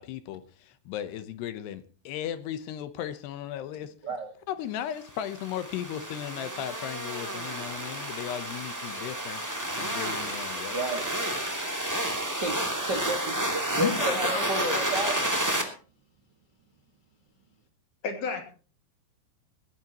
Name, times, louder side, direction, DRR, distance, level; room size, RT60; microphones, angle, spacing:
voice 1, 0.0-3.9 4.5-10.8, left 10 dB, 75° left, 11 dB, 2.9 m, -36 dB
sound 1, 5.2-15.6, right 1 dB, 10° right, 1.2 m, -31 dB
voice 2, 10.7-11.0 12.4-15.3, right 2 dB, 75° right, 4 dB, 0.9 m, -32 dB
voice 3, 13.8-14.8 18.0-18.4, left 5 dB, 50° left, 4 dB, 3.7 m, -31 dB
20.5 x 16.0 x 3.0 m, 0.38 s
omnidirectional pair, 5.2 m